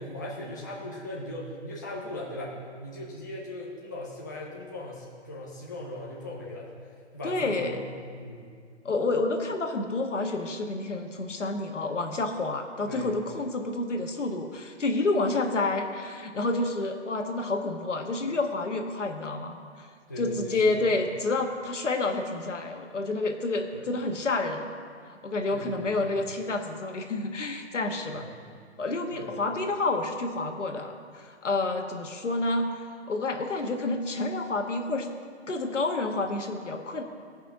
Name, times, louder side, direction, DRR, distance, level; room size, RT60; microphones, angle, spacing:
voice 1, 0.0-6.7 7.1-7.9 8.2-8.5 12.9-13.2 20.1-20.8 23.7-23.9 25.5-26.1 28.1-28.4 29.1-29.4, left 1 dB, 15° left, -5 dB, 0.5 m, -39 dB
voice 2, 7.2-7.8 8.8-19.9 20.2-24.7 25.1-28.3 28.8-35.1 35.5-37.0, left 2 dB, 85° left, 4 dB, 1.5 m, -29 dB
16.0 x 5.6 x 5.9 m, 2.1 s
hypercardioid pair, 165°, 35 cm